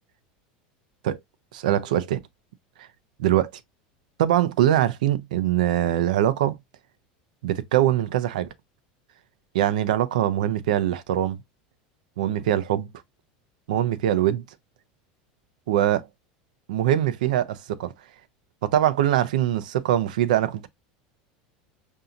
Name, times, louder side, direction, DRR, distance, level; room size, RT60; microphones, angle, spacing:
voice 1, 1.5-2.2 3.2-3.5 4.2-6.6 7.4-8.5 9.5-11.4 12.2-12.9 13.7-14.4 15.7-16.1 16.7-17.9 18.6-20.7, right 12 dB, 85° right, 0.5 m, -22 dB
5.7 x 2.7 x 2.5 m
supercardioid pair, 125°, 4 cm